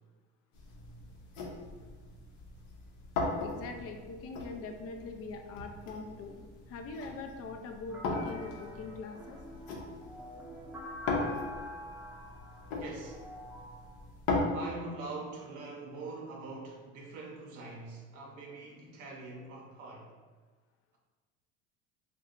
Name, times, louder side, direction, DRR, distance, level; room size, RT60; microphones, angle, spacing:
sound 1, 0.5-14.4, left 3 dB, 65° left, 0.8 m, -39 dB
voice 1, 3.4-6.4 6.7-9.4, left 3 dB, 40° left, 4 dB, 0.5 m, -42 dB
sound 2, 7.9-14.0, left 1 dB, 5° right, 0.7 m, -46 dB
voice 2, 12.7-13.2 14.5-20.1, right 3 dB, 55° right, -1 dB, 0.7 m, -43 dB
2.6 x 2.3 x 3.7 m, 1.4 s
supercardioid pair, 90°, 35 cm